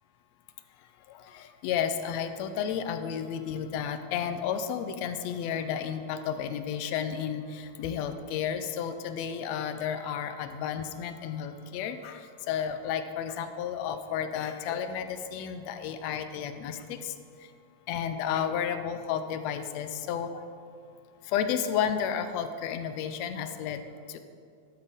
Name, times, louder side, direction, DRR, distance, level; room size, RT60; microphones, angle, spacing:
voice 1, 1.6-7.4 7.8-12.1 12.5-17.0 17.9-20.3 21.3-23.8 24.1-24.2, left 8 dB, 75° left, 9 dB, 1.7 m, -32 dB
12.0 x 9.6 x 3.6 m, 2.3 s
omnidirectional pair, 3.3 m